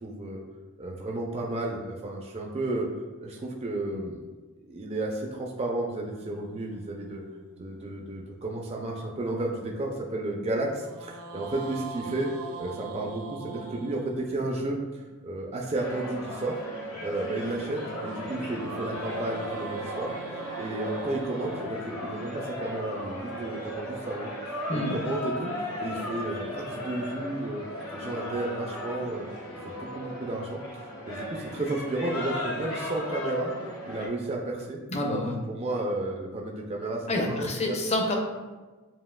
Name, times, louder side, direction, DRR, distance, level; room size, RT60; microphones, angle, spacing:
voice 1, 0.0-0.4 0.8-2.9 3.2-4.2 4.7-7.2 7.6-12.3 12.6-16.6 17.0-20.2 20.6-24.3 24.7-25.5 25.8-27.6 27.9-29.2 29.8-33.5 33.9-34.8 35.1-37.8, right 2 dB, 30° right, -1 dB, 0.4 m, -32 dB
sound 1, 6.1-8.5 10.7-14.9 17.0-23.2, right 6 dB, 80° right, 0.5 m, -44 dB
sound 2, 15.7-34.1, left 1 dB, 85° left, 1.3 m, -36 dB
voice 2, 34.9-35.4 37.1-38.2, left 1 dB, 30° left, 1 dB, 0.6 m, -28 dB
7.3 x 2.7 x 2.2 m, 1.3 s
head